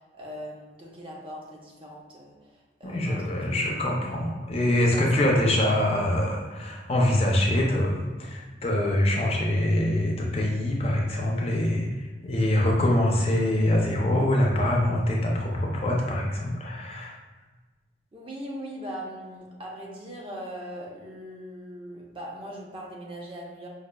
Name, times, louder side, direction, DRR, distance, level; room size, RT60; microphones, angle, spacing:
voice 1, 0.0-3.2 3.5-3.8 4.9-5.3 18.1-23.7, equal, 30° right, -3 dB, 0.6 m, -40 dB
voice 2, 2.8-17.2, left 1 dB, 35° left, -1 dB, 0.4 m, -24 dB
4.9 x 2.4 x 2.2 m, 1.3 s
head